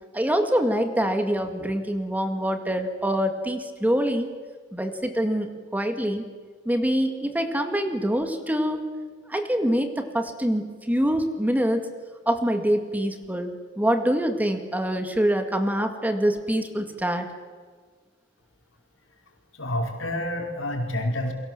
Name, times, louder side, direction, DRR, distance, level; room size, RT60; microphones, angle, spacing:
voice 1, 0.1-4.3 4.7-6.2 6.7-8.8 9.3-11.8 12.3-17.3, equal, 10° right, 6 dB, 2.0 m, -25 dB
voice 2, 19.5-21.3, left 1 dB, 80° left, 2 dB, 5.2 m, -28 dB
29.5 x 23.0 x 7.7 m, 1.5 s
head